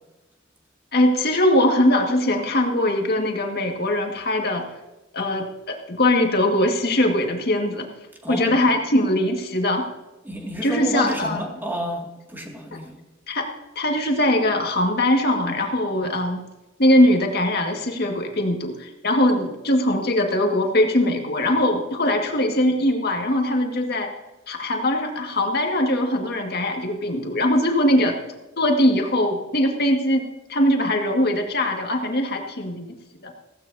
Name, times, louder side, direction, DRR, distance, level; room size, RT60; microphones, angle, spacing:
voice 1, 0.9-4.7 5.1-7.9 8.3-9.8 10.6-11.4 13.3-13.5 13.8-16.4 16.8-24.1 24.5-28.2 28.6-30.2 30.5-32.9 33.2-33.3, left 1 dB, 55° left, 2 dB, 1.9 m, -21 dB
voice 2, 8.2-8.6 10.2-13.0, equal, 10° right, 0 dB, 2.2 m, -30 dB
16.0 x 15.5 x 2.8 m, 1.0 s
head